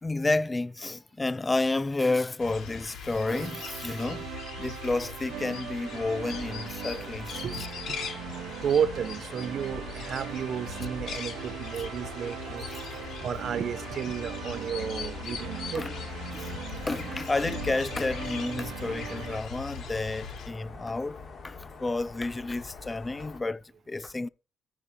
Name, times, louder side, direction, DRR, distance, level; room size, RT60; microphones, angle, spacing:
voice 1, 0.0-4.3 4.6-7.4 12.5-12.8 15.2-15.3 15.7-15.9 16.3-16.5 16.9-24.3, left 2 dB, 20° left, 0.4 m, -31 dB
sound 1, 2.4-20.5, left 6 dB, 80° left, 4.9 m, -41 dB
sound 2, 3.3-19.4, right 12 dB, 85° right, 0.6 m, -41 dB
sound 3, 5.9-23.4, left 5 dB, 50° left, 3.1 m, -44 dB
voice 2, 7.4-8.1 8.6-12.7 13.2-15.8 20.7-20.8, right 8 dB, 60° right, 0.9 m, -32 dB
13.5 x 4.9 x 4.5 m
cardioid pair, 90°, 0 cm